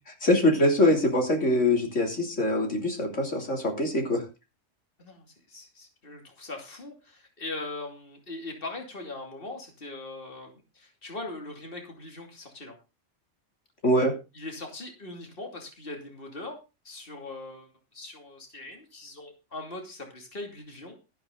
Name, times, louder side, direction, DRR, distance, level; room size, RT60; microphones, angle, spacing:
voice 1, 0.2-4.2 13.8-14.1, left 1 dB, 85° left, 2 dB, 3.6 m, -23 dB
voice 2, 5.0-12.7 14.3-16.6 16.8-21.0, left 2 dB, 50° left, 2 dB, 3.0 m, -40 dB
13.0 x 11.5 x 3.9 m, 0.29 s
omnidirectional pair, 1.2 m